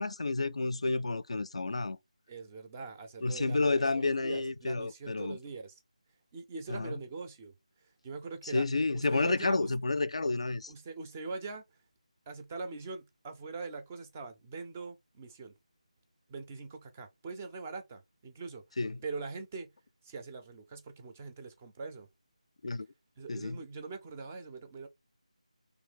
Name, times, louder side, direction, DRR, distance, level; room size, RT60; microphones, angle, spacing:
voice 1, 0.0-2.0 3.2-5.4 6.7-7.0 8.5-10.7 18.8-19.0 22.6-22.9 23.3-23.6, left 3 dB, 55° left, 0.3 m, -30 dB
voice 2, 2.3-5.8 6.3-9.7 10.7-11.6 12.3-15.5 16.3-19.7 20.0-22.1 23.2-24.9, right 4 dB, 15° right, 0.4 m, -43 dB
3.1 x 2.7 x 3.4 m
figure-of-eight pair, 160°, 4 cm